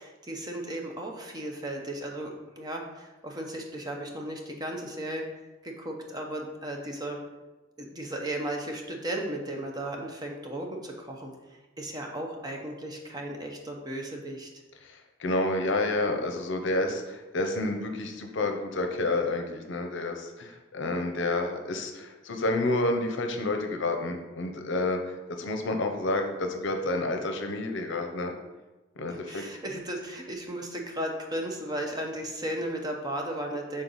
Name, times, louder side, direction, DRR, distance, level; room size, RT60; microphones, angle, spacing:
voice 1, 0.0-5.2 5.6-7.2 7.8-11.3 11.8-14.5 29.1-33.8, right 1 dB, 20° right, 1 dB, 0.7 m, -35 dB
voice 2, 14.8-28.3 29.0-29.4, left 2 dB, 60° left, 4 dB, 0.7 m, -29 dB
6.3 x 3.8 x 4.0 m, 1.1 s
head